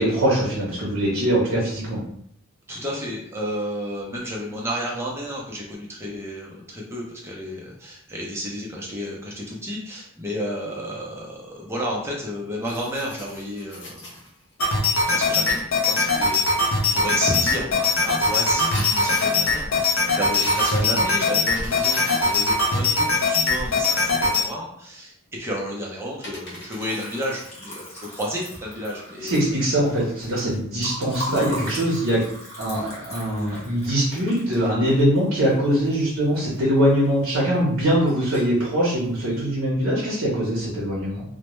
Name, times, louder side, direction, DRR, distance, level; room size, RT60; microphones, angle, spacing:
voice 1, 0.0-2.0 20.7-21.0 29.2-32.2 32.6-41.2, equal, 70° right, -6 dB, 0.7 m, -22 dB
voice 2, 2.7-14.0 15.1-29.3, equal, 10° right, -3 dB, 0.5 m, -31 dB
sound 1, 12.6-14.9 16.1-16.9 17.8-19.6 20.2-21.0 21.4-24.1 25.6-25.7 26.2-27.5, left 1 dB, 55° left, 0.9 m, -39 dB
sound 2, 14.6-24.4, left 3 dB, 75° left, 0.5 m, -21 dB
Liquid, 26.4-36.6 36.9-37.6 37.8-38.6, equal, 30° left, 0.8 m, -39 dB
2.1 x 2.1 x 2.9 m, 0.70 s
head